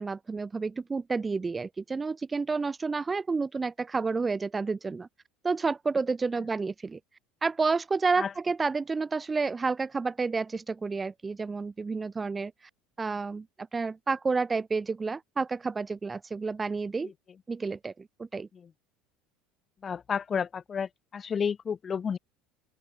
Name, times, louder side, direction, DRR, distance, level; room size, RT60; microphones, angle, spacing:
voice 1, 0.0-5.1 5.4-7.0 7.4-12.5 13.0-17.1 17.5-18.5, right 4 dB, 20° right, 0.3 m, -30 dB
voice 2, 19.8-22.2, left 6 dB, 30° left, 0.5 m, -31 dB
open air
figure-of-eight pair, 65°, 0 cm